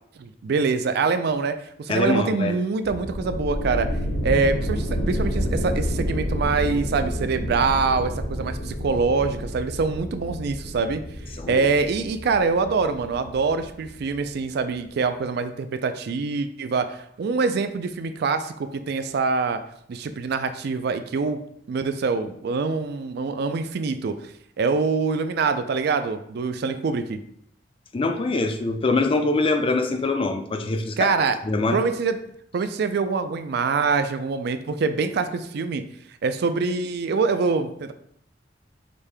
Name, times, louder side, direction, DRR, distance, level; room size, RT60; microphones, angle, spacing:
voice 1, 0.2-3.9 4.2-11.0 11.5-19.6 19.9-21.4 21.7-24.2 24.6-27.2 31.0-31.4 31.7-32.2 32.5-35.8 36.2-37.9, right 4 dB, 60° right, 10 dB, 0.4 m, -24 dB
voice 2, 1.9-2.5 11.4-11.7 27.9-31.1 31.5-31.8, left 3 dB, 30° left, 6 dB, 0.4 m, -23 dB
sound 1, 2.8-14.3, equal, 80° left, 0.9 m, -29 dB
5.1 x 2.7 x 3.3 m, 0.69 s
head